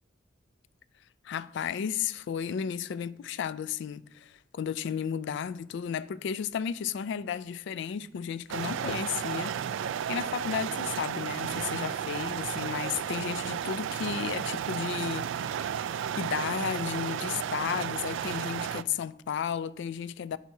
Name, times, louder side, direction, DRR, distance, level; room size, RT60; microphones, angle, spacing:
voice 1, 1.2-9.5 10.1-15.6 16.2-20.4, left 8 dB, 65° left, 0.3 m, -33 dB
sound 1, 8.5-18.8, right 8 dB, 75° right, 0.3 m, -33 dB
9.9 x 6.1 x 2.8 m
head